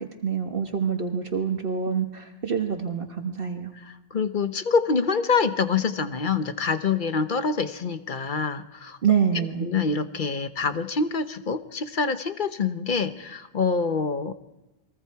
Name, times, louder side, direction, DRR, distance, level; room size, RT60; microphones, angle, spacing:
voice 1, 0.0-3.7 9.0-9.7, right 7 dB, 55° right, 3 dB, 1.5 m, -26 dB
voice 2, 3.8-9.0 9.3-14.3, left 5 dB, 50° left, 10 dB, 1.0 m, -26 dB
28.5 x 22.0 x 4.7 m, 1.0 s
omnidirectional pair, 1.1 m